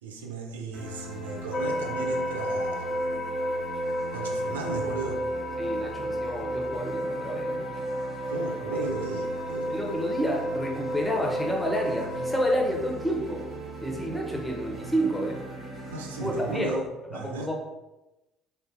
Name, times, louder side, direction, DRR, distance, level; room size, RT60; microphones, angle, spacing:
voice 1, 0.0-3.0 4.1-5.2 8.3-9.7 15.9-16.8 17.1-17.5, right 3 dB, 75° right, 1 dB, 0.4 m, -35 dB
sound 1, 0.7-16.7, right 1 dB, 40° right, 1.1 m, -40 dB
sound 2, 1.5-12.4, equal, 40° left, 0.4 m, -32 dB
voice 2, 5.6-7.7 8.7-8.8 9.7-13.4 13.8-15.4 16.2-16.8 17.1-17.5, equal, 10° left, 0 dB, 0.8 m, -29 dB
3.4 x 2.5 x 2.8 m, 1.0 s
figure-of-eight pair, 55°, 0 cm